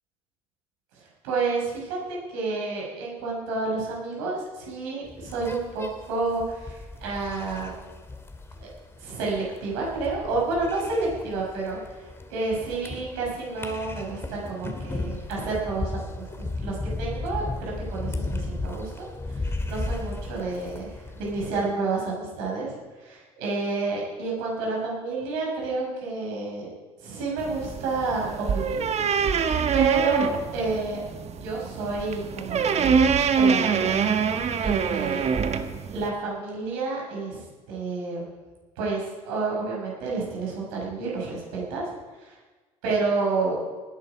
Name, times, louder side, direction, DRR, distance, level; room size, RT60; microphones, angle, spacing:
voice 1, 0.9-7.7 8.5-8.7 9.0-12.0 12.3-26.7 27.0-28.8 29.7-31.0 31.4-34.0 34.6-35.2 35.9-38.3 38.8-41.9 42.2-42.4 42.8-43.6, right 3 dB, 65° right, -2 dB, 6.0 m, -30 dB
sound 1, 5.0-21.5, left 2 dB, 15° left, 2.4 m, -35 dB
sound 2, 27.4-36.1, right 6 dB, 40° right, 1.3 m, -25 dB
19.0 x 11.0 x 5.0 m, 1.3 s
figure-of-eight pair, 60°, 17 cm